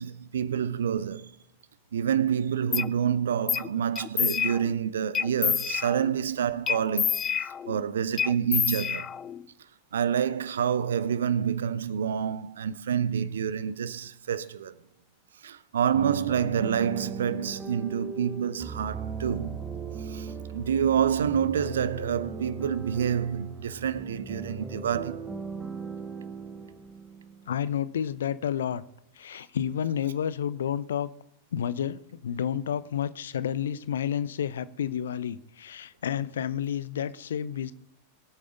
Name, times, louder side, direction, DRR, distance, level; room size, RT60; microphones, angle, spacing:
voice 1, 0.0-1.3 1.9-7.2 7.7-9.1 9.9-14.7 15.4-19.6 20.0-25.3, right 8 dB, 65° right, 0.7 m, -28 dB
sound 1, 2.7-2.9 3.5-3.7 4.0-4.8 5.1-6.2 6.7-7.8 8.2-9.4, left 8 dB, 25° left, 0.4 m, -28 dB
sound 2, 15.9-27.7, right 5 dB, 15° right, 1.5 m, -39 dB
voice 2, 27.5-28.8 29.2-31.1 31.5-37.7, left 9 dB, 65° left, 0.7 m, -30 dB
23.5 x 8.6 x 3.9 m
figure-of-eight pair, 90°, 0 cm